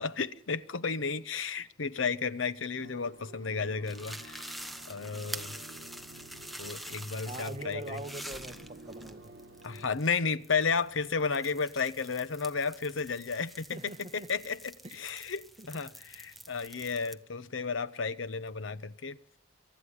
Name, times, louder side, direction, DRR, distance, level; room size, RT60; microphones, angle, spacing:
voice 1, 0.0-4.5 4.9-5.6 6.6-8.0 9.6-19.2, left 5 dB, 85° left, 0.9 m, -33 dB
sound 1, 2.8-9.9, right 2 dB, 65° right, 1.4 m, -51 dB
sound 2, 3.8-17.1, equal, ahead, 1.1 m, -47 dB
voice 2, 7.3-9.4 13.7-14.3 14.8-15.0 15.6-15.7, right 2 dB, 35° right, 1.3 m, -42 dB
24.0 x 12.5 x 9.9 m
head